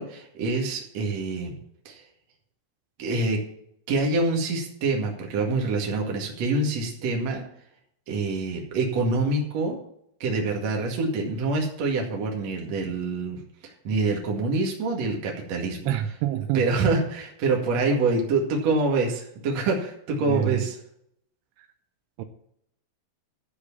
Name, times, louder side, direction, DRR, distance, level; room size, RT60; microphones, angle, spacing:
voice 1, 0.0-1.5 1.9-2.0 3.0-3.4 3.9-7.4 8.1-9.8 10.2-15.8 16.5-20.8, right 3 dB, 50° right, 0 dB, 2.2 m, -26 dB
voice 2, 15.9-16.7 20.2-20.7 21.6-21.7 22.2-22.3, right 12 dB, 80° right, 7 dB, 3.2 m, -27 dB
13.0 x 4.9 x 8.4 m, 0.72 s
omnidirectional pair, 5.8 m